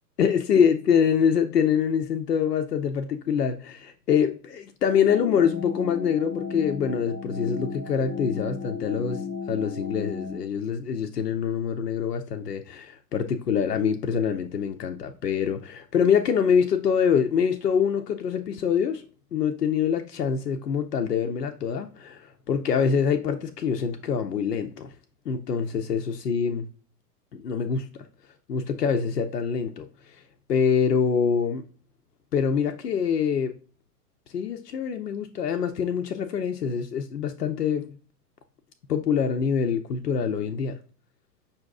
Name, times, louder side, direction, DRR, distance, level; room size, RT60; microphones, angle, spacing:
voice 1, 0.2-9.2 9.5-19.0 19.3-24.9 25.3-26.7 27.3-28.1 28.5-30.2 30.5-31.6 32.3-33.5 34.3-37.9 38.9-40.8, left 7 dB, 80° left, 0.5 m, -25 dB
sound 1, 4.9-10.4, left 5 dB, 15° left, 0.4 m, -34 dB
5.6 x 2.7 x 3.4 m
figure-of-eight pair, 95°, 47 cm